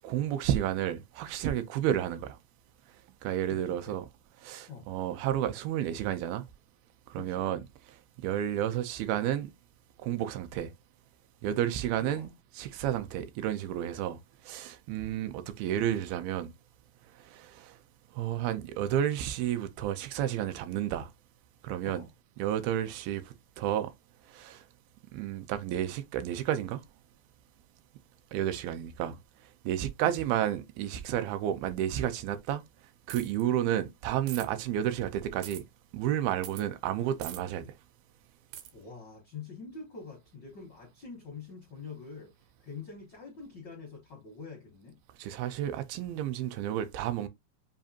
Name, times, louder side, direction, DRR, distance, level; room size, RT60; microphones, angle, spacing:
voice 1, 0.0-2.4 3.2-4.1 4.4-6.5 7.1-7.6 7.9-9.5 10.0-10.7 11.4-16.5 17.1-17.8 18.1-21.1 21.6-22.1 22.4-23.9 24.3-24.7 25.1-26.8 28.3-29.2 29.6-32.6 33.1-35.6 35.9-37.7 45.2-47.3, right 11 dB, 90° right, 2.6 m, -31 dB
voice 2, 3.5-4.0 4.7-4.9 7.1-7.4 12.0-12.3 21.8-22.1 30.0-30.1 38.7-45.0, left 5 dB, 85° left, 1.0 m, -45 dB
sound 1, 33.1-33.4 34.3-34.5 35.4-35.6 36.4-36.7 37.2-37.4 38.5-38.7, right 11 dB, 75° right, 1.8 m, -42 dB
7.4 x 2.5 x 2.7 m
omnidirectional pair, 4.2 m